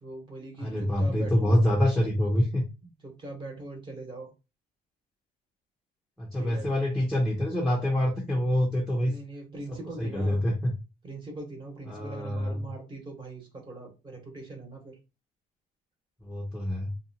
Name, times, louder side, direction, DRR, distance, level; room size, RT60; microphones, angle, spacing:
voice 1, 0.0-1.6 3.0-4.3 6.3-6.7 9.0-10.4 11.0-15.0, right 2 dB, 30° right, 1.0 m, -41 dB
voice 2, 0.6-2.6 6.2-9.1 10.0-10.7 11.9-12.7 16.2-16.9, left 1 dB, 5° left, 0.6 m, -26 dB
2.6 x 2.2 x 2.7 m
cardioid pair, 110°, 17 cm